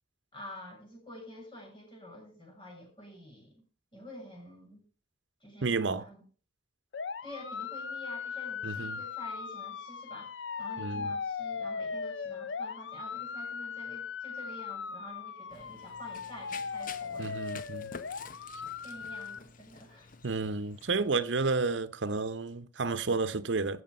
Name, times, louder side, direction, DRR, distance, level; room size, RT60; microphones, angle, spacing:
voice 1, 0.3-3.6 3.9-4.9 5.4-6.2 7.2-10.3 10.6-17.4 18.8-20.1, left 1 dB, 30° left, 7.2 m, -48 dB
voice 2, 5.6-6.0 8.6-9.0 10.8-11.1 17.2-17.9 20.2-23.8, right 4 dB, 85° right, 0.8 m, -31 dB
sound 1, 6.9-19.4, left 5 dB, 80° left, 0.6 m, -38 dB
Run, 15.5-21.1, left 5 dB, 50° left, 0.9 m, -49 dB
15.5 x 6.5 x 5.4 m
head